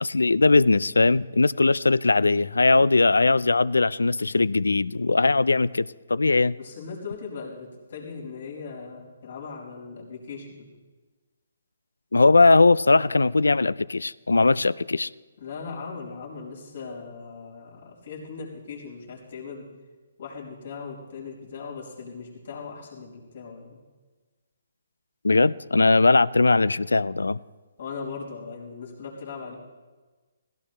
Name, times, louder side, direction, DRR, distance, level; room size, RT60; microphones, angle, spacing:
voice 1, 0.0-6.6 12.1-15.1 25.2-27.4, left 3 dB, 90° left, 21 dB, 0.3 m, -20 dB
voice 2, 6.6-10.7 15.4-19.7 20.2-23.8 27.8-29.5, left 5 dB, 65° left, -4 dB, 4.9 m, -39 dB
17.0 x 17.0 x 3.3 m, 1.3 s
hypercardioid pair, 145°, 0 cm